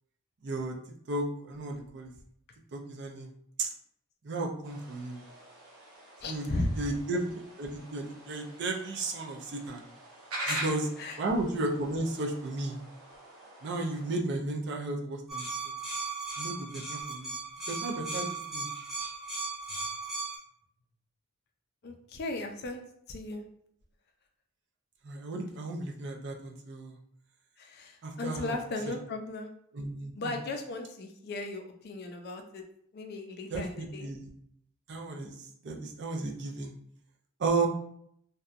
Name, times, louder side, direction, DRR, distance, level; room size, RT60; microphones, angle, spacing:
voice 1, 0.4-0.7 1.1-2.1 2.7-3.3 3.6-3.7 4.2-5.2 6.3-6.5 6.8-9.8 10.5-10.9 11.2-12.8 13.6-15.4 16.4-17.3 17.7-18.7 25.0-27.0 28.0-28.6 29.7-30.4 33.5-34.3 34.9-36.7 37.4-37.7, right 2 dB, 55° right, 2 dB, 0.4 m, -34 dB
sound 1, 4.6-14.2, right 2 dB, 85° right, 0.7 m, -44 dB
voice 2, 6.2-6.8 10.4-10.6 11.0-11.2 21.8-22.8 23.1-23.4 27.6-29.5 30.1-32.6 32.9-34.1, left 2 dB, 50° left, 4 dB, 0.4 m, -36 dB
sound 2, 15.3-20.4, right 3 dB, ahead, 0.6 m, -37 dB
2.7 x 2.2 x 2.4 m, 0.69 s
head